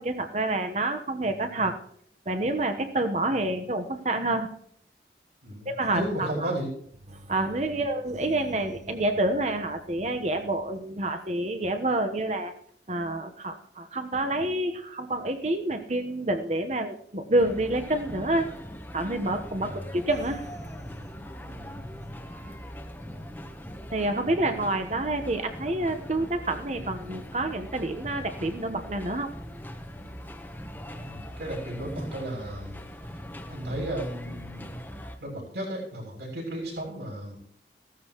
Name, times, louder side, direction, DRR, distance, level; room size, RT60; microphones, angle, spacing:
voice 1, 0.0-1.8 2.3-4.5 5.6-6.5 7.1-12.5 12.9-18.5 18.9-20.5 23.9-29.3, right 2 dB, 40° right, 7 dB, 1.1 m, -28 dB
voice 2, 5.4-6.7 7.7-7.9 19.6-19.9 21.4-21.8 30.9-32.8 33.5-34.8 35.2-37.4, right 1 dB, 75° right, -2 dB, 7.1 m, -35 dB
sound 1, 17.4-35.2, equal, 10° left, 1.0 m, -41 dB
15.5 x 13.5 x 3.1 m, 0.63 s
head